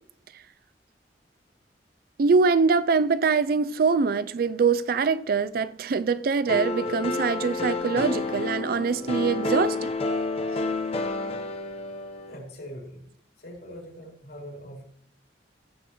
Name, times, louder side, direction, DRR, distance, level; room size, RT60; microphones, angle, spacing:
voice 1, 2.2-9.9, right 5 dB, 55° right, 0.4 m, -23 dB
sound 1, 6.5-12.4, left 3 dB, 35° left, 0.9 m, -29 dB
voice 2, 12.3-13.1 13.4-14.8, equal, 60° left, 3.5 m, -42 dB
16.0 x 6.9 x 3.0 m
head